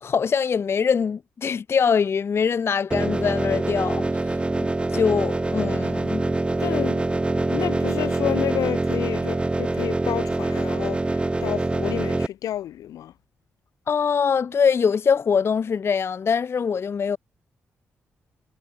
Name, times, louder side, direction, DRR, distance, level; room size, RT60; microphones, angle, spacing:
voice 1, 0.0-4.4 4.9-6.2 13.9-17.2, left 6 dB, 45° left, 0.4 m, -23 dB
sound 1, 2.9-12.3, right 2 dB, 20° right, 0.5 m, -24 dB
voice 2, 6.6-7.1 7.4-13.1, left 12 dB, 80° left, 0.7 m, -30 dB
supercardioid pair, 55°, 6 cm